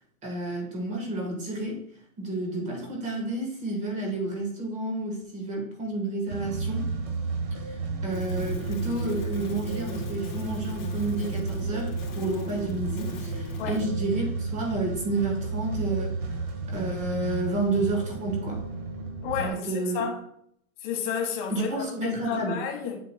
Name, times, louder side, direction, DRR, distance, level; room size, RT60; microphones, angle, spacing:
voice 1, 0.2-1.8 2.2-6.9 7.7-16.2 16.7-18.7 19.4-20.0 21.5-22.6, right 2 dB, 15° right, 1.3 m, -30 dB
sound 1, 6.3-19.5, right 3 dB, 45° right, 1.5 m, -32 dB
sound 2, 8.1-13.9, left 4 dB, 70° left, 1.9 m, -41 dB
voice 2, 19.2-20.2 20.8-23.0, left 7 dB, 30° left, 1.3 m, -31 dB
7.7 x 7.1 x 2.2 m
supercardioid pair, 160°, 45 cm